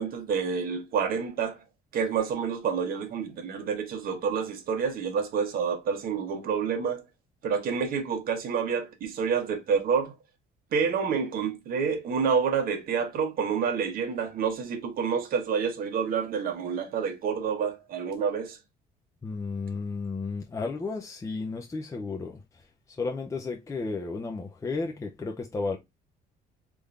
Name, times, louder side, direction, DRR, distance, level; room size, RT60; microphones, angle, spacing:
voice 1, 0.0-1.6 1.9-7.0 7.4-10.1 10.7-18.6, right 6 dB, 60° right, 1.1 m, -28 dB
voice 2, 19.2-25.8, left 4 dB, 20° left, 0.6 m, -33 dB
3.7 x 2.6 x 3.3 m
cardioid pair, 110°, 17 cm